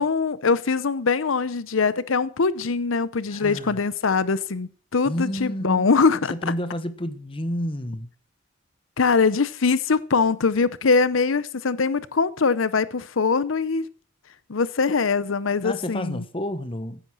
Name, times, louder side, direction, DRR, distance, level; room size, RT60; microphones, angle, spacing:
voice 1, 0.0-6.3 9.0-13.9 14.5-16.2, left 4 dB, 85° left, 0.7 m, -22 dB
voice 2, 3.3-3.8 5.0-5.9 6.3-8.1 15.6-17.0, equal, 25° left, 1.2 m, -30 dB
15.5 x 9.7 x 6.2 m
head